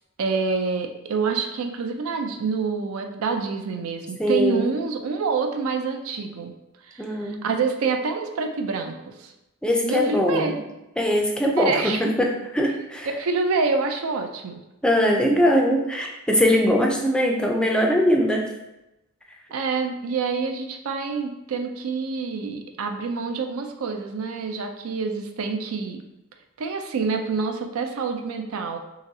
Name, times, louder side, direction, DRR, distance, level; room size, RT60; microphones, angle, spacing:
voice 1, 0.2-6.5 6.9-9.3 9.8-10.5 11.6-12.1 13.2-14.6 19.5-26.0 26.6-28.8, right 4 dB, 80° right, 5 dB, 0.4 m, -27 dB
voice 2, 4.2-4.7 7.0-7.5 9.6-10.6 11.0-13.1 14.8-18.5, equal, 5° left, 1 dB, 0.3 m, -21 dB
3.8 x 3.0 x 2.7 m, 0.95 s
head